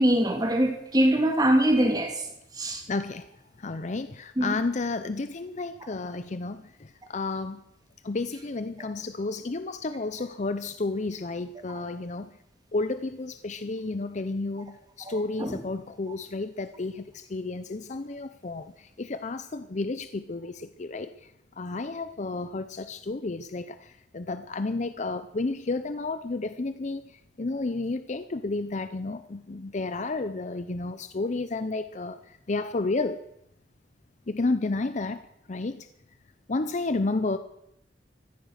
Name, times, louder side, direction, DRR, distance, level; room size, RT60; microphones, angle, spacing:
voice 1, 0.0-2.2 2.5-2.8 4.4-4.6 15.0-15.5, right 1 dB, 20° right, 4 dB, 2.3 m, -23 dB
voice 2, 2.9-7.6 8.0-12.4 12.7-33.2 34.3-35.9 36.5-37.4, left 3 dB, 40° left, 11 dB, 0.6 m, -32 dB
15.0 x 13.5 x 6.4 m, 0.80 s
head